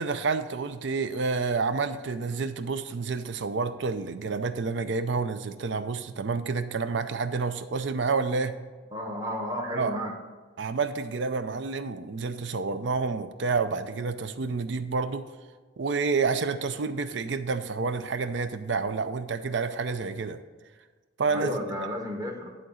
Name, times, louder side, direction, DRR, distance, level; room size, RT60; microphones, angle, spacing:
voice 1, 0.0-8.7 9.7-9.9 10.6-15.3 15.8-20.4 21.2-21.6, right 4 dB, 60° right, 11 dB, 0.5 m, -29 dB
voice 2, 8.9-10.1 21.3-22.6, equal, 20° right, 2 dB, 1.0 m, -32 dB
11.0 x 3.9 x 6.3 m, 1.4 s
head